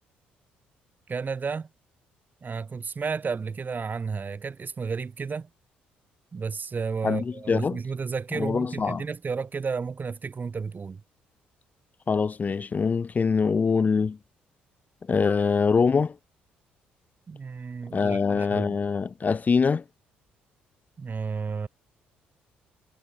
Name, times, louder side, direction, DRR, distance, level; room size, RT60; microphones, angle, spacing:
voice 1, 1.1-1.7 2.4-5.5 6.3-11.0 17.3-18.8 21.0-21.7, right 5 dB, 40° right, 3.8 m, -32 dB
voice 2, 7.0-7.8 8.3-9.0 12.1-14.2 15.1-16.2 17.9-19.8, left 5 dB, 35° left, 0.5 m, -24 dB
hypercardioid pair, 50°, 5 cm